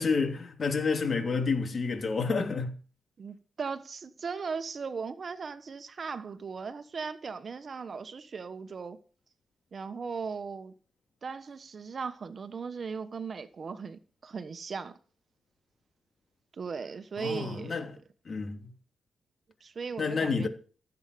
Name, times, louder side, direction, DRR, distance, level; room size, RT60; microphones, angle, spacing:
voice 1, 0.0-2.7 17.2-17.9 18.2-18.7 20.0-20.5, left 4 dB, 50° left, 3.1 m, -29 dB
voice 2, 3.2-9.0 9.7-10.7 11.2-15.0 16.5-17.9 19.6-20.5, right 5 dB, 50° right, 1.2 m, -38 dB
16.0 x 8.2 x 6.8 m
cardioid pair, 85°, 0 cm